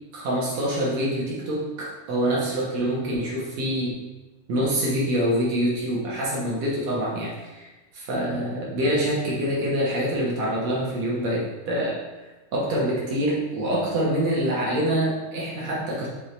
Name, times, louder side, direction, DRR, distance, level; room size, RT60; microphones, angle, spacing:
voice 1, 0.1-4.0 4.5-7.7 7.9-11.9 12.5-16.1, right 1 dB, 60° right, -5 dB, 2.2 m, -25 dB
6.3 x 3.7 x 4.3 m, 1.1 s
omnidirectional pair, 3.6 m